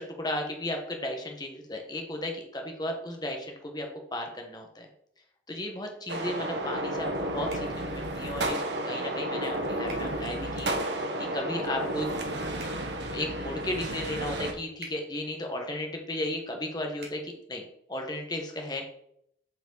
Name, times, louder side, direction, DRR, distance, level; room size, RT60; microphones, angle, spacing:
voice 1, 0.0-4.9 5.5-12.1 13.1-18.8, left 1 dB, 20° left, 3 dB, 1.3 m, -35 dB
sound 1, 6.1-14.5, right 1 dB, 75° right, 1.1 m, -32 dB
sound 2, 7.5-7.7 9.8-10.0 12.5-12.8 14.8-15.0 17.0-17.2, right 2 dB, 55° right, 2.2 m, -45 dB
7.8 x 4.9 x 4.0 m, 0.70 s
head